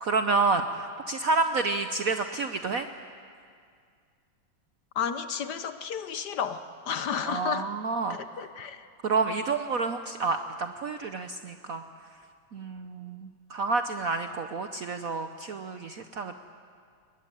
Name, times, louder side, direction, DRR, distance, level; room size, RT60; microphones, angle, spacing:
voice 1, 0.0-2.9 7.3-8.2 9.0-11.8 12.5-16.3, right 4 dB, 60° right, 8 dB, 0.9 m, -29 dB
voice 2, 4.9-7.7 8.1-8.9, left 7 dB, 60° left, 10 dB, 1.3 m, -32 dB
22.0 x 19.5 x 9.8 m, 2.2 s
omnidirectional pair, 2.3 m